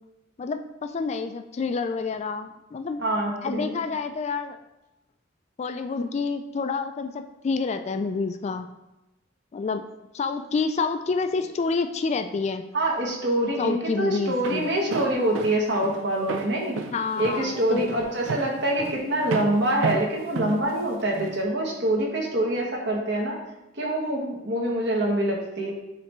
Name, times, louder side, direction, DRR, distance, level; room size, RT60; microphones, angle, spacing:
voice 1, 0.4-3.0 3.4-4.6 5.6-8.7 9.5-9.8 10.1-12.6 13.6-14.7 16.9-18.0, left 4 dB, 35° left, 8 dB, 0.3 m, -28 dB
voice 2, 3.0-3.8 12.7-16.8 17.2-23.4 23.8-25.7, right 1 dB, 60° right, -1 dB, 1.4 m, -25 dB
Walk footsteps, 14.2-21.4, right 4 dB, 85° right, 0.5 m, -33 dB
9.7 x 3.4 x 3.1 m, 0.96 s
head